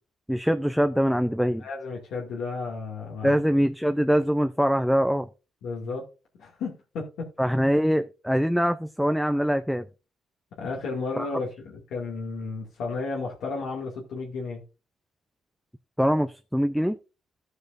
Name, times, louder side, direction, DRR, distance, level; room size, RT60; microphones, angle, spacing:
voice 1, 0.3-1.6 3.2-5.3 7.4-9.9 11.2-11.3 16.0-17.0, equal, ahead, 0.5 m, -23 dB
voice 2, 1.6-3.4 5.6-6.1 6.4-7.3 10.6-14.6, left 4 dB, 80° left, 2.2 m, -33 dB
13.5 x 8.0 x 2.6 m
cardioid pair, 90°, 0 cm